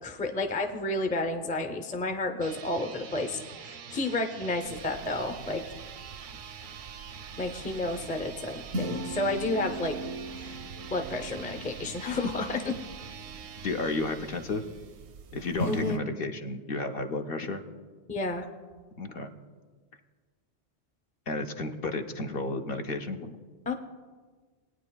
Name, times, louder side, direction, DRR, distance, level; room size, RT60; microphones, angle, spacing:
voice 1, 0.0-5.6 7.4-10.0 10.4-10.6 10.9-12.7 15.7-16.0 18.1-18.4 23.7-23.8, left 2 dB, 10° left, 4 dB, 0.4 m, -31 dB
sound 1, 2.3-15.1, right 6 dB, 60° right, 0.6 m, -45 dB
sound 2, 4.7-16.0, right 1 dB, 85° right, 0.9 m, -40 dB
voice 2, 13.6-14.6 15.3-17.6 19.0-19.3 21.3-23.3, left 3 dB, 65° left, 5 dB, 0.8 m, -32 dB
19.5 x 9.3 x 2.2 m, 1.5 s
omnidirectional pair, 1.1 m